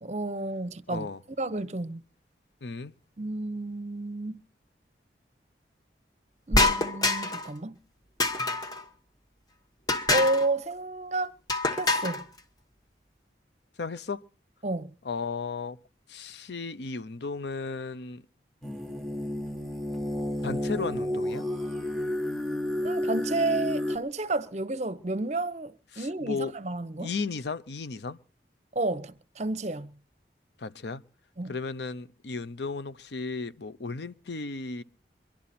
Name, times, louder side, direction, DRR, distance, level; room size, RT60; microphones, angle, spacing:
voice 1, 0.0-1.1 1.4-2.0 3.2-4.4 6.5-7.8 10.1-11.3 11.8-12.2 14.6-14.9 22.8-27.1 28.7-29.9 31.4-31.5, right 2 dB, 40° right, 0.8 m, -31 dB
voice 2, 0.9-1.2 2.6-2.9 13.8-14.2 15.0-15.8 16.1-18.2 20.4-21.5 25.9-26.5 27.0-28.2 30.6-31.0 31.5-34.8, left 4 dB, 75° left, 0.7 m, -35 dB
sound 1, 6.5-7.5 8.2-8.8 9.9-10.5 11.5-12.2, left 2 dB, 20° left, 1.0 m, -25 dB
sound 2, 18.6-24.0, left 1 dB, ahead, 1.2 m, -31 dB
23.5 x 11.5 x 4.3 m
head